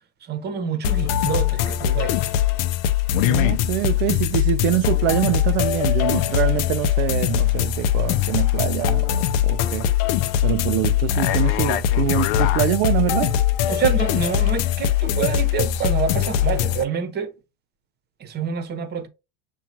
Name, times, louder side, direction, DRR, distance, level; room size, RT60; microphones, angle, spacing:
voice 1, 0.2-2.2 13.7-17.3 18.2-19.1, right 7 dB, 35° right, 0.9 m, -27 dB
sound 1, 0.8-16.8, left 11 dB, 65° left, 0.6 m, -21 dB
voice 2, 3.2-9.9 10.4-13.3, right 15 dB, 70° right, 0.5 m, -24 dB
7.0 x 2.4 x 2.9 m
supercardioid pair, 110°, 30 cm